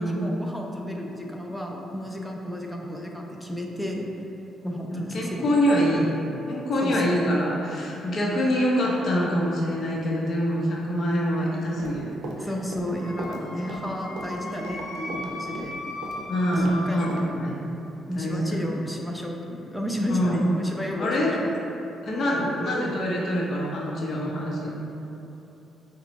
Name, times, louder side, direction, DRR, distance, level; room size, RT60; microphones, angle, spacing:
voice 1, 0.0-4.1 4.6-5.4 6.8-7.0 12.4-15.7 16.5-17.2 18.1-21.1 21.4-21.5, equal, 5° left, 0 dB, 0.5 m, -32 dB
voice 2, 4.9-6.2 6.5-12.1 12.4-12.5 16.3-17.5 18.1-18.7 20.1-20.5 21.0-21.7 22.0-24.7, equal, 55° left, -4 dB, 0.8 m, -25 dB
Run, 11.6-16.7 17.1-17.3, right 3 dB, 80° right, 0.5 m, -38 dB
Wind instrument woodwind instrument, 12.9-17.1, left 1 dB, 85° left, 0.5 m, -37 dB
6.8 x 2.3 x 3.1 m, 2.9 s
cardioid pair, 90°, 0 cm